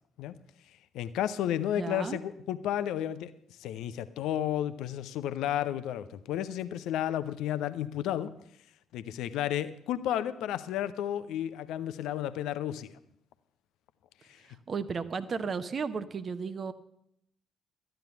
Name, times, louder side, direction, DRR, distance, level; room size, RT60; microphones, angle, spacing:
voice 1, 0.9-3.3 3.6-8.3 8.9-12.9, left 11 dB, 65° left, 13 dB, 0.6 m, -32 dB
voice 2, 1.7-2.2 14.7-16.7, right 5 dB, 45° right, 12 dB, 0.9 m, -34 dB
13.5 x 9.0 x 6.9 m, 0.74 s
figure-of-eight pair, 40°, 0 cm